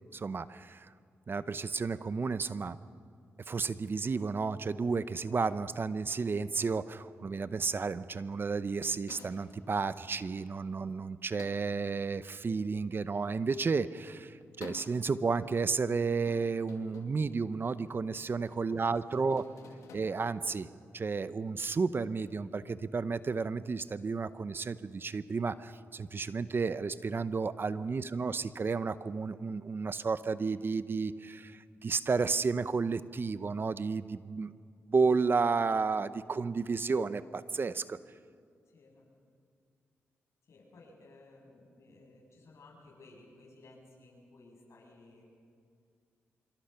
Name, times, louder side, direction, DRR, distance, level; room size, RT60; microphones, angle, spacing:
voice 1, 0.1-0.9 1.3-2.8 3.5-19.4 19.9-20.7 20.9-34.5 34.9-38.0, right 4 dB, 45° right, 14 dB, 0.8 m, -32 dB
sound 1, 9.1-20.0, left 5 dB, 85° left, 2.4 m, -55 dB
voice 2, 18.7-20.0 28.0-28.3 38.7-39.1 40.4-45.2, left 2 dB, 65° left, -1 dB, 7.6 m, -57 dB
26.0 x 24.0 x 5.8 m, 2.3 s
cardioid pair, 60°, 5 cm